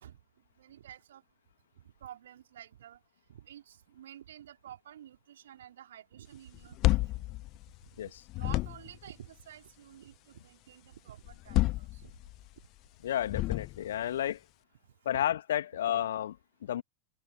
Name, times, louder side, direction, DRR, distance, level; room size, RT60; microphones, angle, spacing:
voice 1, 0.6-1.2 2.0-3.0 3.3-7.2 8.4-12.1 15.1-15.2, right 11 dB, 60° right, 3.7 m, -50 dB
sound 1, 6.5-8.0 8.3-9.1 11.2-12.5 13.2-14.0, left 19 dB, 40° left, 0.8 m, -30 dB
voice 2, 13.0-14.4 15.0-16.8, left 11 dB, 60° left, 2.5 m, -32 dB
open air
figure-of-eight pair, 90°, 0 cm